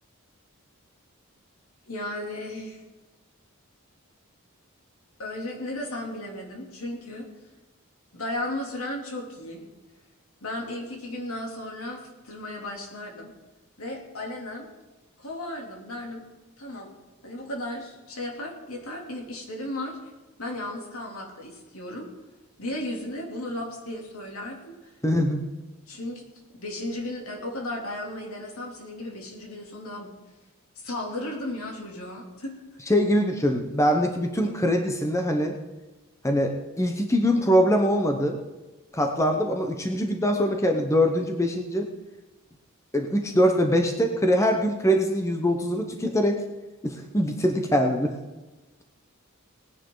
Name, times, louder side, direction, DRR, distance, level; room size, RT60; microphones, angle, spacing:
voice 1, 1.9-2.8 5.2-7.3 8.1-9.6 10.4-13.3 13.8-14.7 15.2-16.2 16.6-16.9 17.2-20.0 20.4-22.1 22.6-24.9 25.9-26.2 26.5-30.1 30.8-32.6, left 1 dB, 80° left, 0 dB, 3.0 m, -35 dB
voice 2, 25.0-25.4 32.9-35.6 36.2-38.4 38.9-41.9 42.9-46.4 46.8-48.2, equal, 15° left, 4 dB, 0.9 m, -23 dB
18.5 x 10.0 x 3.9 m, 1.1 s
head